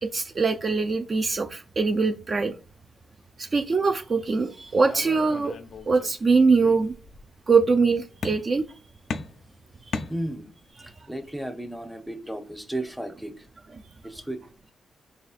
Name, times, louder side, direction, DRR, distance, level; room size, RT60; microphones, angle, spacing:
voice 1, 0.0-2.5 3.4-5.5 5.9-6.9 7.5-8.6, right 4 dB, 40° right, 5 dB, 0.3 m, -22 dB
sound 1, 4.8-6.2 6.5-7.3 8.2-8.7 9.1-10.7, left 4 dB, 65° left, 0.3 m, -36 dB
voice 2, 10.1-10.5 10.8-13.5 14.0-14.4, right 1 dB, ahead, 8 dB, 0.6 m, -34 dB
4.1 x 3.1 x 2.4 m, 0.37 s
cardioid pair, 70°, 0 cm